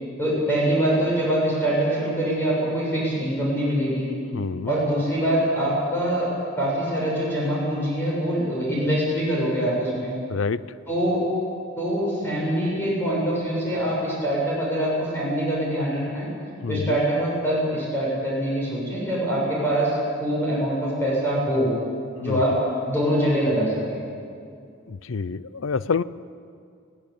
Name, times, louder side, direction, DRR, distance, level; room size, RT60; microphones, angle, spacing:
voice 1, 0.2-4.1 4.7-6.3 6.6-10.1 10.9-11.2 11.8-16.3 16.7-21.7 22.2-22.5 22.8-24.0, right 1 dB, 10° left, -6 dB, 7.3 m, -24 dB
voice 2, 4.3-4.7 10.3-10.6 16.6-17.0 22.2-22.4 24.9-26.0, left 5 dB, 80° left, 17 dB, 0.6 m, -27 dB
22.5 x 17.5 x 8.8 m, 2.4 s
head